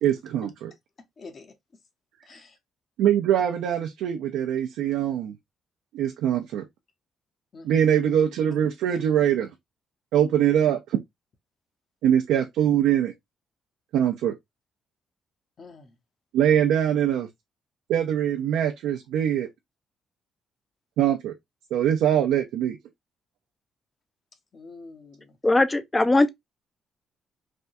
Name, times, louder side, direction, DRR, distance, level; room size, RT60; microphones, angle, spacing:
voice 1, 0.0-0.7 3.0-5.3 5.9-6.6 7.6-9.5 10.1-11.0 12.0-13.1 13.9-14.4 16.3-17.3 17.9-19.5 21.0-21.3 21.7-22.8, right 10 dB, 90° right, 0.4 m, -23 dB
voice 2, 1.2-1.5 2.2-2.6 7.5-7.9 15.6-15.9 24.5-25.4, left 3 dB, 45° left, 0.8 m, -46 dB
voice 3, 25.4-26.3, left 2 dB, 15° left, 0.4 m, -20 dB
3.4 x 2.2 x 2.6 m
cardioid pair, 90°, 0 cm